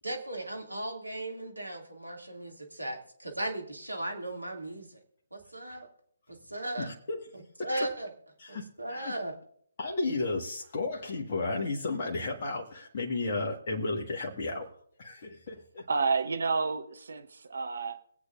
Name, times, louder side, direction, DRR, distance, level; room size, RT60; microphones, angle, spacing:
voice 1, 0.0-5.0 5.3-5.9 6.3-6.9 7.3-8.1 8.5-9.4, right 1 dB, 85° right, 2 dB, 2.3 m, -37 dB
voice 2, 6.8-7.2 8.4-9.1 9.8-14.7 15.0-15.9, left 3 dB, 40° left, 0 dB, 1.4 m, -33 dB
voice 3, 15.9-18.0, right 4 dB, 60° right, 8 dB, 1.1 m, -30 dB
23.0 x 8.2 x 2.5 m, 0.64 s
figure-of-eight pair, 140°, 0 cm